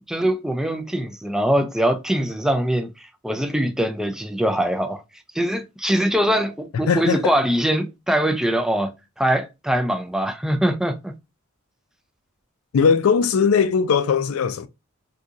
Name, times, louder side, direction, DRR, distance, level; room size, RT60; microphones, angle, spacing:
voice 1, 0.1-5.0 5.3-8.9 9.2-11.1, right 1 dB, 5° right, 0.4 m, -22 dB
voice 2, 6.9-7.3 12.7-14.7, left 6 dB, 75° left, 0.4 m, -19 dB
3.9 x 2.7 x 2.4 m
head